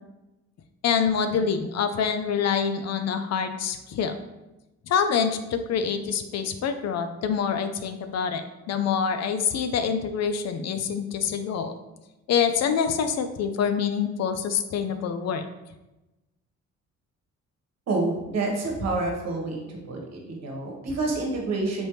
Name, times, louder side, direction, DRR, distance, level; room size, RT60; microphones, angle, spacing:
voice 1, 0.8-4.1 4.9-11.7 12.3-15.4, left 7 dB, 60° left, 8 dB, 0.5 m, -26 dB
voice 2, 17.9-19.6 19.9-21.9, right 2 dB, 60° right, 0 dB, 1.2 m, -28 dB
4.2 x 3.3 x 3.1 m, 1.0 s
cardioid pair, 90°, 30 cm